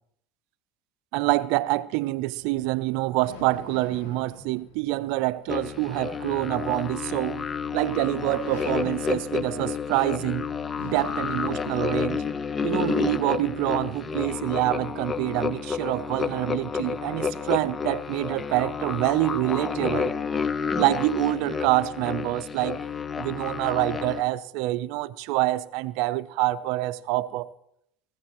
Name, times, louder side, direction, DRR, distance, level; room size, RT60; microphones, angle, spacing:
voice 1, 1.1-7.5 7.7-10.5 10.8-12.2 12.6-20.1 20.8-22.8 23.2-27.5, right 18 dB, 65° right, 0.5 m, -26 dB
sound 1, 2.1-12.5, left 5 dB, 75° left, 2.8 m, -47 dB
sound 2, 5.5-24.2, left 6 dB, 25° left, 0.6 m, -30 dB
19.5 x 15.5 x 3.1 m
supercardioid pair, 95°, 0 cm